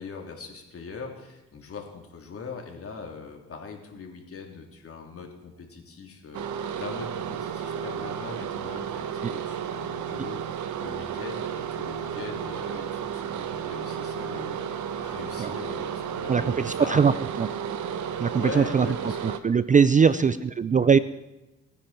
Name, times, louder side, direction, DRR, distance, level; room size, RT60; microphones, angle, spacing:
voice 1, 0.0-17.3 18.4-19.2 19.9-20.4 20.7-21.0, left 5 dB, 50° left, 2 dB, 3.7 m, -41 dB
sound 1, 6.3-19.4, right 8 dB, 70° right, 1.2 m, -33 dB
voice 2, 16.3-17.1 17.4-17.5 18.2-18.9 19.2-21.0, right 6 dB, 25° right, 15 dB, 0.5 m, -21 dB
30.0 x 10.0 x 4.5 m, 0.98 s
cardioid pair, 90°, 30 cm